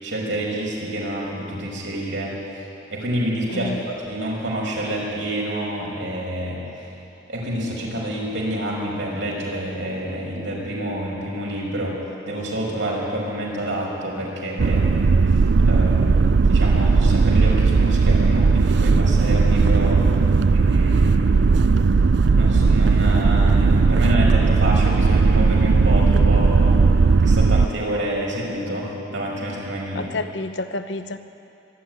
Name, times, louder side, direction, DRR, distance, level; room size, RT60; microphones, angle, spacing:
voice 1, 0.0-2.5 2.9-6.6 7.3-12.0 12.3-14.9 15.3-15.4 15.6-20.0 20.5-21.4 22.3-26.8 27.2-30.1, right 1 dB, 85° right, -3 dB, 5.6 m, -28 dB
voice 2, 3.5-3.8 29.9-31.2, left 2 dB, 70° left, 9 dB, 1.0 m, -29 dB
sound 1, 14.6-27.7, right 4 dB, 65° right, 0.5 m, -17 dB
23.5 x 11.5 x 9.5 m, 2.9 s
head